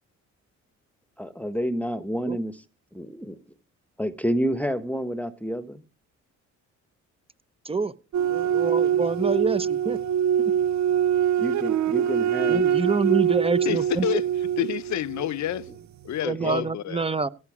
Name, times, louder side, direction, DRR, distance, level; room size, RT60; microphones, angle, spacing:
voice 1, 1.2-2.5 2.9-3.4 4.0-5.8 11.4-12.6 16.4-16.7, equal, 5° left, 1.1 m, -29 dB
sound 1, 8.1-15.7, right 9 dB, 65° right, 0.5 m, -24 dB
voice 2, 8.3-10.0 10.4-10.5 12.5-14.1 16.2-17.3, right 4 dB, 20° right, 0.8 m, -26 dB
voice 3, 13.7-14.2 14.6-15.7 16.0-17.0, left 12 dB, 65° left, 0.8 m, -28 dB
17.5 x 8.4 x 4.9 m
cardioid pair, 90°, 30 cm